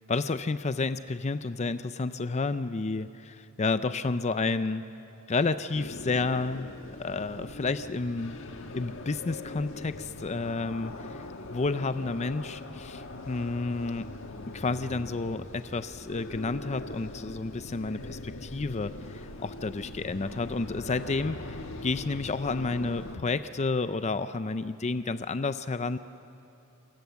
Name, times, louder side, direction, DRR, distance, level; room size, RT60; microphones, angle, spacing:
voice 1, 0.1-4.8 5.3-6.7 7.0-8.4 8.7-14.1 14.5-26.0, left 3 dB, 30° left, 12 dB, 0.5 m, -31 dB
sound 1, 5.7-23.2, left 2 dB, 60° left, 1.5 m, -41 dB
28.5 x 23.5 x 7.1 m, 2.8 s
head